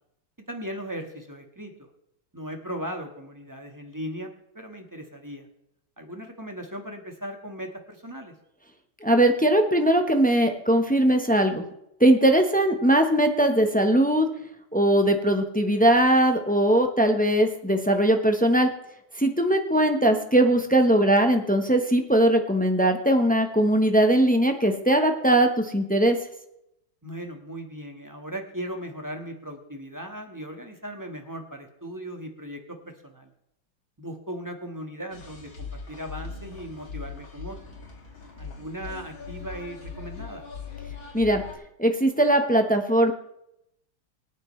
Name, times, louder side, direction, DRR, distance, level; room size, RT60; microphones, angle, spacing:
voice 1, 0.5-1.7 2.3-5.5 6.0-8.3 27.0-33.3 34.0-37.6 38.4-40.4, equal, 10° right, 3 dB, 1.3 m, -38 dB
voice 2, 9.0-11.6 12.0-14.3 14.7-18.7 19.2-26.2 41.1-41.4 41.8-43.1, right 1 dB, 10° left, 5 dB, 0.4 m, -20 dB
sound 1, 35.1-41.5, left 5 dB, 75° left, 3.0 m, -40 dB
24.0 x 9.4 x 3.2 m, 0.81 s
omnidirectional pair, 2.2 m